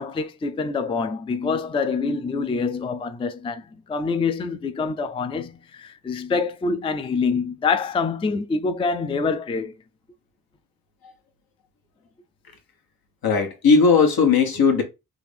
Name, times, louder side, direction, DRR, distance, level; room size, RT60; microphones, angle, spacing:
voice 1, 0.0-9.7, left 4 dB, 15° left, 0.3 m, -26 dB
voice 2, 13.2-14.8, left 5 dB, 80° left, 1.1 m, -17 dB
3.4 x 2.5 x 3.3 m
cardioid pair, 75°, 36 cm